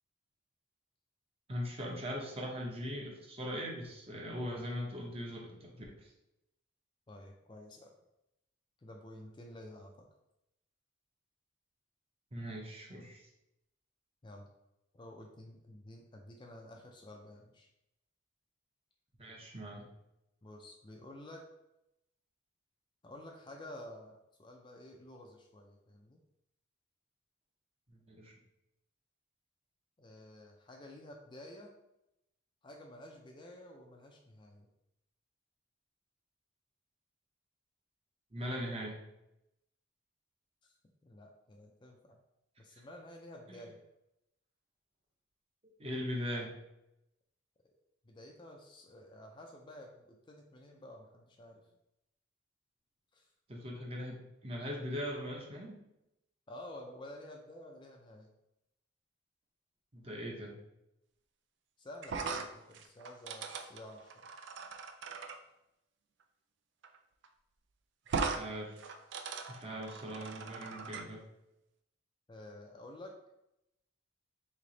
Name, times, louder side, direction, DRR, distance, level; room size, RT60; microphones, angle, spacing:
voice 1, 1.5-6.1 12.3-13.2 19.2-19.9 27.9-28.3 38.3-39.0 43.5-43.6 45.8-46.5 53.5-55.8 59.9-60.6 68.2-68.8 69.5-71.2, equal, 30° right, 0 dB, 0.7 m, -40 dB
voice 2, 7.1-7.9 8.8-10.1 14.2-14.5 14.9-17.7 20.4-21.4 23.0-26.2 30.0-31.7 32.6-34.7 40.6-40.7 41.0-42.2 42.6-43.8 46.3-46.5 48.0-51.7 53.1-53.3 56.5-58.3 61.8-64.1 72.3-73.1, left 1 dB, 25° left, 1 dB, 0.4 m, -51 dB
sound 1, 62.0-65.4 66.8-67.0 67.2-67.3 68.1-68.4 68.8-71.0, right 4 dB, 60° right, 0.3 m, -39 dB
3.2 x 2.8 x 3.9 m, 0.85 s
head